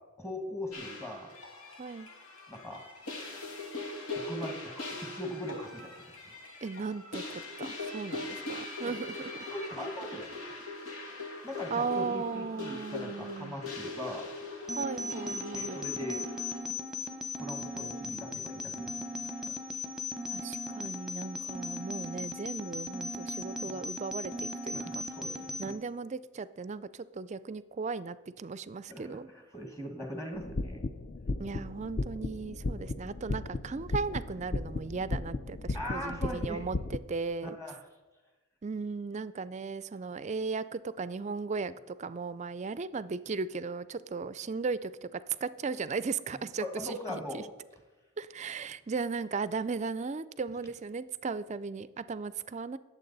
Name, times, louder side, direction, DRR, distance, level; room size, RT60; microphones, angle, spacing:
voice 1, 0.2-1.3 2.5-2.8 4.2-4.7 5.0-6.0 8.8-8.9 9.5-10.4 11.4-14.4 15.5-16.2 17.4-19.8 23.6-23.8 24.7-25.7 28.9-30.8 35.7-36.6 37.4-37.8 46.6-47.5, equal, 15° left, 2 dB, 1.4 m, -40 dB
sound 1, 0.7-16.6, left 2 dB, 80° left, 2.1 m, -41 dB
voice 2, 1.8-2.1 6.6-9.5 11.7-13.6 14.8-15.8 20.3-24.8 25.6-29.3 31.4-37.6 38.6-47.4 48.2-52.8, right 4 dB, 30° right, 16 dB, 0.3 m, -36 dB
sound 2, 14.7-25.7, left 2 dB, 5° right, 0.8 m, -38 dB
sound 3, 30.4-37.0, left 2 dB, 40° left, 0.5 m, -35 dB
19.0 x 7.3 x 4.0 m, 1.2 s
head